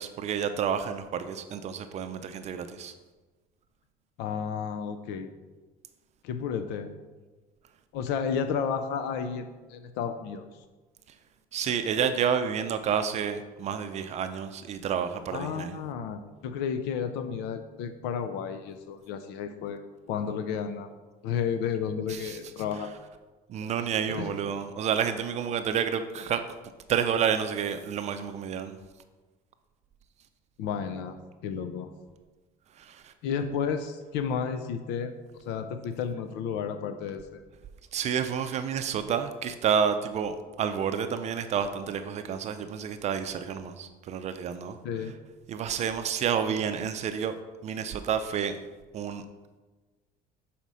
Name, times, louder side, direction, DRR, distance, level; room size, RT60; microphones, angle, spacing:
voice 1, 0.0-2.9 11.5-15.8 22.1-22.4 23.5-26.4 26.9-28.8 32.8-33.1 37.9-44.8 45.5-47.3 47.6-48.6 48.9-49.2, right 7 dB, 40° right, 9 dB, 0.4 m, -29 dB
voice 2, 4.2-5.3 6.2-6.9 7.9-10.4 15.3-19.8 20.1-20.9 21.2-22.9 23.6-23.7 24.1-24.3 30.6-31.1 31.4-31.9 33.2-37.4 44.8-45.1, left 7 dB, 80° left, 9 dB, 0.5 m, -32 dB
6.2 x 4.2 x 5.4 m, 1.3 s
cardioid pair, 140°, 17 cm